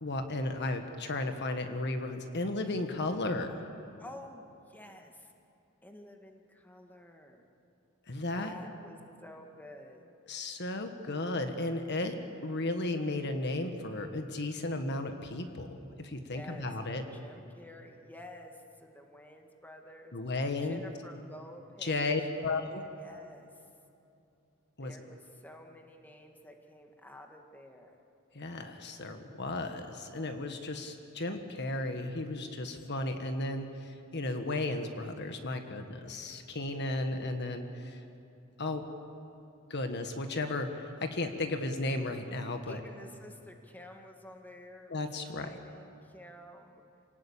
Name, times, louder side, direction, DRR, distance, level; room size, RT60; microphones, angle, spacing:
voice 1, 0.0-3.6 8.1-8.5 10.3-15.7 16.0-17.0 20.1-20.8 21.8-22.8 24.8-24.9 28.3-38.0 38.6-38.8 39.7-42.8 44.9-45.6, left 2 dB, 55° left, 6 dB, 1.6 m, -34 dB
voice 2, 4.0-5.3 5.8-7.4 8.4-10.0 16.3-20.1 20.6-22.1 22.4-22.5 23.0-23.5 24.8-28.0 42.6-45.1 45.3-46.8, left 1 dB, 10° left, 3 dB, 1.7 m, -50 dB
27.5 x 19.0 x 8.7 m, 2.7 s
head